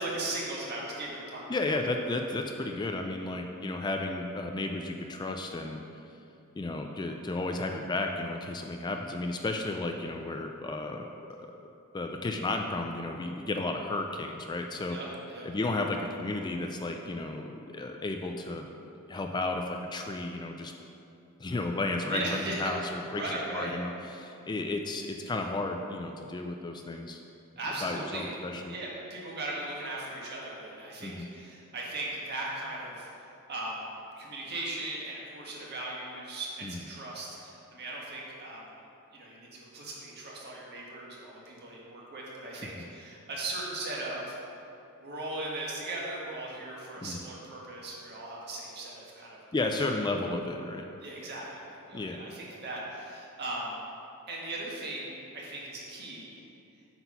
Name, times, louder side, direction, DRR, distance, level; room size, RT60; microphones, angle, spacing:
voice 1, 0.0-1.6 14.9-15.5 22.1-22.7 23.1-23.7 27.6-28.3 28.7-33.1 33.5-38.7 39.1-44.3 45.0-49.4 49.8-49.9 51.0-53.9 54.3-56.4, right 2 dB, 50° right, -4 dB, 1.6 m, -38 dB
voice 2, 1.5-5.8 6.6-11.5 11.9-15.0 15.4-18.6 19.1-20.7 21.4-27.2 27.8-28.7 31.0-31.3 36.6-36.8 42.8-42.9 47.0-47.2 49.5-50.8 51.9-52.2, left 2 dB, 20° left, 3 dB, 0.3 m, -33 dB
8.1 x 4.3 x 5.6 m, 2.7 s
head